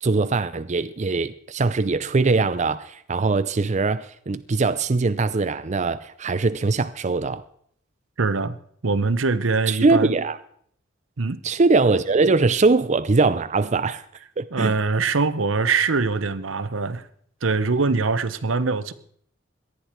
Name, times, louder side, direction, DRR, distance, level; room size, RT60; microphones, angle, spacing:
voice 1, 0.0-7.4 9.7-10.4 11.4-14.0 14.4-14.8, right 3 dB, 35° right, 0.5 m, -21 dB
voice 2, 8.2-8.6 8.8-10.1 11.2-11.4 14.5-17.1 17.4-18.9, right 4 dB, 80° right, 0.9 m, -23 dB
18.5 x 12.0 x 4.5 m
head